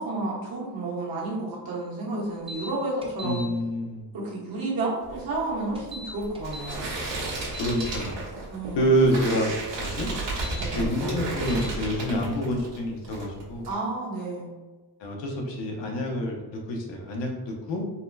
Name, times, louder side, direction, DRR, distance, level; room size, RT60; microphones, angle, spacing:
voice 1, 0.0-3.4 4.1-6.8 8.5-8.9 10.6-10.8 13.6-14.5, right 2 dB, 55° right, -6 dB, 1.2 m, -31 dB
sound 1, 2.5-2.7 3.0-3.4 5.7-6.7 7.2-8.0 10.3-10.6 11.5-11.7, left 1 dB, 15° right, 0.4 m, -40 dB
voice 2, 3.2-4.0 7.6-8.2 8.7-10.1 10.8-13.7 15.0-17.8, equal, 85° left, 1 dB, 0.8 m, -27 dB
sound 2, 5.0-12.8 13.0-13.7, right 2 dB, 90° right, 1.2 m, -33 dB
4.0 x 2.1 x 2.6 m, 1.2 s
cardioid pair, 120°, 42 cm